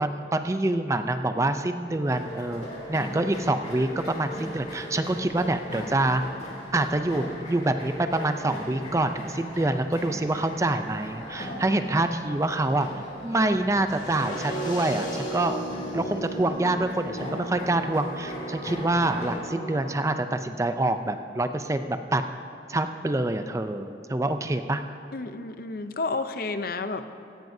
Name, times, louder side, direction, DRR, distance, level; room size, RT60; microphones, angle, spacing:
voice 1, 0.0-6.2 6.7-12.9 13.2-15.6 15.9-22.2 22.7-24.8, right 2 dB, 15° right, 8 dB, 0.4 m, -26 dB
sound 1, 2.0-19.4, equal, 35° left, 2.8 m, -39 dB
sound 2, 13.9-19.9, right 1 dB, 90° left, 3.2 m, -36 dB
voice 2, 25.1-27.1, left 3 dB, 55° left, 10 dB, 0.6 m, -31 dB
17.0 x 15.5 x 2.7 m, 2.8 s
head